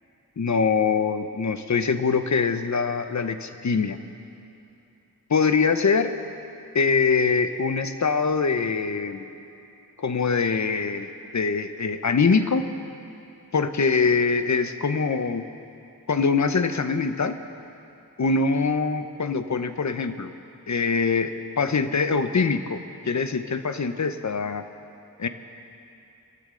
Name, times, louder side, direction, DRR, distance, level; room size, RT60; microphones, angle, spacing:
voice 1, 0.4-4.0 5.3-6.2 6.7-9.3 10.0-12.7 13.5-15.4 16.1-17.4 18.2-20.3 20.7-24.6 25.2-25.3, left 5 dB, 50° left, 9 dB, 0.8 m, -23 dB
24.5 x 13.5 x 3.8 m, 2.7 s
wide cardioid pair, 65°, 36 cm